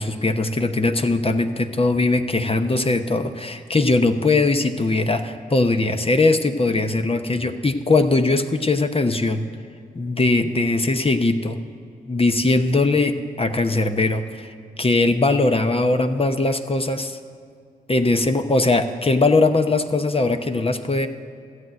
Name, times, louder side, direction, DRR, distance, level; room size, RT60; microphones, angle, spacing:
voice 1, 0.0-9.5 9.9-11.6 12.1-14.5 14.8-17.2 17.9-21.1, left 2 dB, 30° left, 7 dB, 0.9 m, -20 dB
13.5 x 8.0 x 7.6 m, 2.3 s
supercardioid pair, 40°, 19 cm